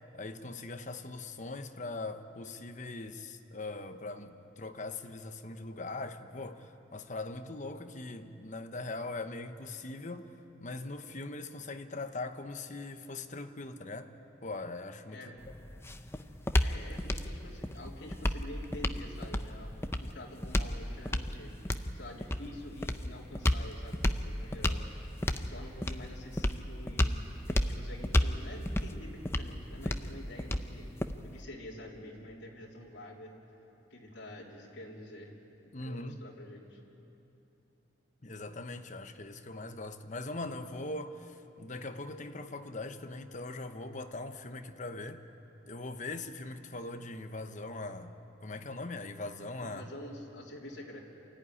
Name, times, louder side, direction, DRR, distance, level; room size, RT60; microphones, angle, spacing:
voice 1, 0.1-10.3 10.6-14.1 14.4-15.5 35.7-36.2 38.2-45.3 45.7-49.8, left 2 dB, 40° left, 1.0 m, -41 dB
voice 2, 15.1-15.5 16.6-19.7 20.0-21.5 21.9-24.9 25.2-27.2 27.5-30.9 31.2-33.3 33.9-35.3 35.6-36.8 49.6-51.0, left 1 dB, 65° left, 3.5 m, -47 dB
sound 1, 15.4-31.4, left 1 dB, 15° left, 0.7 m, -33 dB
27.5 x 14.0 x 9.9 m
head